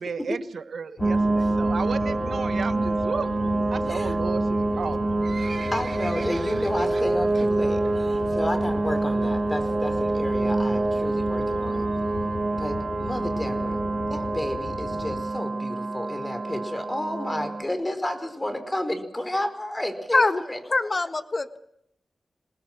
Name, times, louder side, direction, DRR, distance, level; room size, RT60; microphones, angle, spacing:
voice 1, 0.0-3.3 3.7-5.1, right 5 dB, 80° right, 12 dB, 1.3 m, -33 dB
sound 1, 1.0-15.2, left 4 dB, 70° left, 2.4 m, -36 dB
sound 2, 1.0-17.6, right 2 dB, 35° right, 2.0 m, -26 dB
Livestock farm animals working animals, 4.8-7.5 7.8-8.1 8.4-8.5 9.2-9.3 9.6-9.7 9.9-10.0 10.5-10.8 11.3-11.4 11.7-11.8 11.9-12.0 12.2-12.3 12.8-12.9 13.4-13.5 13.9-14.0, right 4 dB, 60° right, 1.1 m, -41 dB
voice 2, 5.7-11.9 12.6-13.8 14.1-20.6, left 1 dB, 15° left, 8 dB, 4.8 m, -31 dB
voice 3, 20.7-21.6, left 3 dB, 40° left, 10 dB, 1.5 m, -23 dB
27.5 x 20.0 x 6.2 m, 0.75 s
cardioid pair, 65°, 0 cm